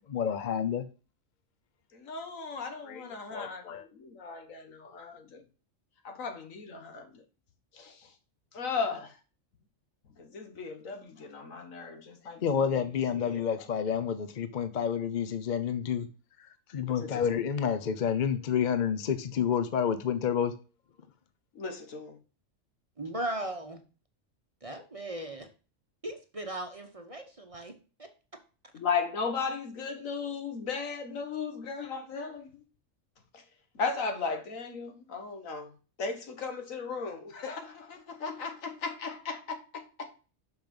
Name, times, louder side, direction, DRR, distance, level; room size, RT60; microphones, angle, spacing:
voice 1, 0.1-0.8 2.9-3.8 12.4-16.1 16.4-20.5, left 8 dB, 50° left, 0.6 m, -29 dB
voice 2, 1.9-5.4 6.0-7.2 7.7-8.1 8.5-9.2 10.2-13.4 16.9-17.4 21.5-22.2 28.7-32.5 33.3-33.4 33.7-35.7 36.0-40.1, left 5 dB, 80° left, 1.7 m, -36 dB
voice 3, 23.0-23.8 24.6-25.5 26.0-28.1, right 1 dB, 30° right, 0.8 m, -38 dB
5.9 x 5.6 x 5.2 m
omnidirectional pair, 1.4 m